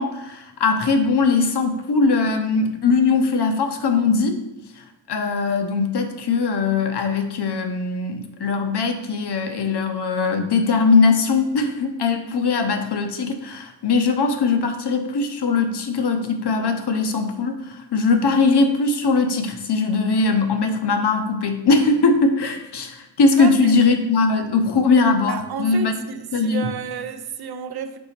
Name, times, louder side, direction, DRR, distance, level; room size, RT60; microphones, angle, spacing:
voice 1, 0.0-4.4 4.8-25.9 26.3-26.7, left 4 dB, 65° left, 0.8 m, -20 dB
voice 2, 23.4-23.7 25.3-28.0, right 7 dB, 60° right, 0.5 m, -31 dB
5.4 x 4.0 x 4.3 m
wide cardioid pair, 145°, 44 cm